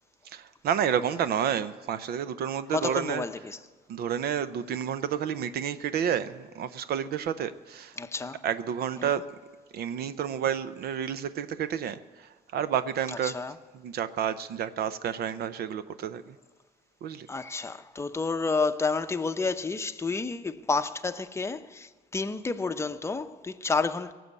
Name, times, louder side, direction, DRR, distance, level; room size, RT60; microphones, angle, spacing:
voice 1, 0.2-3.2 3.9-8.0 8.4-9.2 9.7-13.3 13.7-16.4 17.0-17.3, right 8 dB, 65° right, 0.7 m, -30 dB
voice 2, 2.7-3.6 8.0-8.4 9.0-9.2 13.1-13.5 17.3-24.1, left 4 dB, 15° left, 0.7 m, -30 dB
17.5 x 7.7 x 8.3 m
cardioid pair, 110°, 17 cm